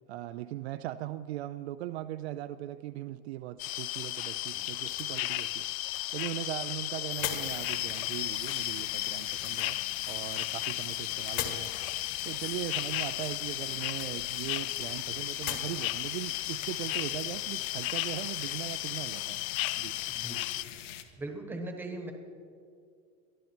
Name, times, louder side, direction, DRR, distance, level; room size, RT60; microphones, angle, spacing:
voice 1, 0.1-5.7 6.1-9.8 10.1-11.7 12.2-19.4 19.8-20.0, right 14 dB, 55° right, 10 dB, 0.5 m, -39 dB
sound 1, 3.6-20.6, left 16 dB, 85° left, 0.7 m, -34 dB
sound 2, 4.0-17.5, left 9 dB, 35° left, 1.6 m, -45 dB
sound 3, 7.3-21.0, left 11 dB, 65° left, 1.5 m, -45 dB
voice 2, 21.2-22.1, right 2 dB, 5° right, 3 dB, 1.2 m, -39 dB
23.0 x 14.0 x 4.5 m, 2.3 s
supercardioid pair, 180°, 39 cm